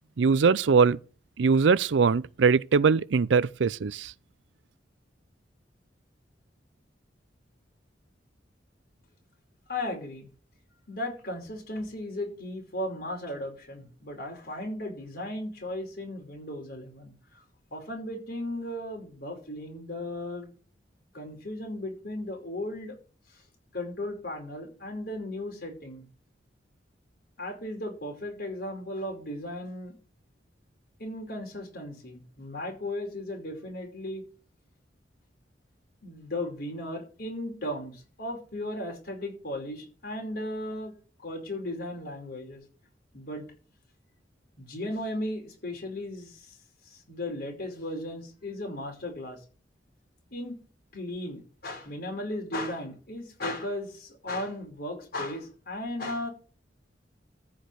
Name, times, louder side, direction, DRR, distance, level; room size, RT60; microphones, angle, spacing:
voice 1, 0.2-1.0 1.4-4.1, right 5 dB, 80° right, 0.5 m, -22 dB
voice 2, 9.7-10.3 10.9-17.1 17.7-20.5 21.1-23.0 23.7-26.1 27.4-30.0 31.0-34.2 36.0-40.9 41.2-42.6 43.1-43.4 44.6-46.6 46.8-49.4 50.3-50.6 50.9-56.3, left 1 dB, 55° left, 5.1 m, -36 dB
14.0 x 5.1 x 8.1 m
head